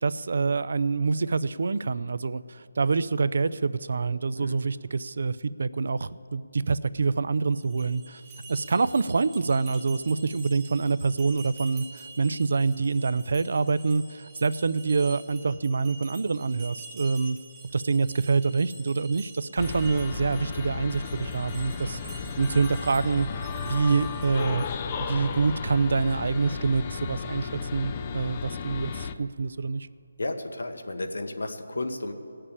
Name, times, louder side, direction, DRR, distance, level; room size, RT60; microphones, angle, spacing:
voice 1, 0.0-8.2 8.5-17.4 17.7-22.0 22.4-23.3 23.6-24.6 25.0-29.9, right 4 dB, 50° right, 15 dB, 0.4 m, -26 dB
sound 1, 7.5-25.0, right 4 dB, 10° right, 0.8 m, -48 dB
sound 2, 19.6-29.1, left 5 dB, 20° left, 0.4 m, -34 dB
voice 2, 30.2-32.1, left 2 dB, 90° left, 6 dB, 1.5 m, -33 dB
18.0 x 6.7 x 8.7 m, 2.8 s
hypercardioid pair, 175°, 0 cm